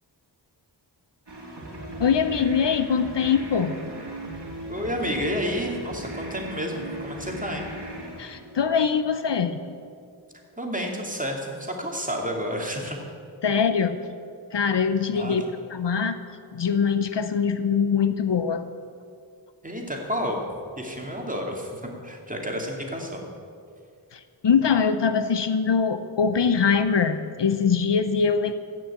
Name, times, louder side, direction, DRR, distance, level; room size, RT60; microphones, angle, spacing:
sound 1, 1.3-9.0, right 1 dB, 60° right, 2.9 m, -37 dB
voice 1, 2.0-3.8 8.2-9.6 13.4-14.0 14.5-15.4 15.7-16.2 16.5-18.6 24.1-28.5, left 6 dB, 65° left, 10 dB, 0.8 m, -23 dB
voice 2, 4.7-7.7 10.6-13.0 15.1-15.4 19.6-20.4 20.8-23.2, equal, 15° right, 0 dB, 2.7 m, -30 dB
15.5 x 6.2 x 8.7 m, 2.3 s
wide cardioid pair, 50°, 46 cm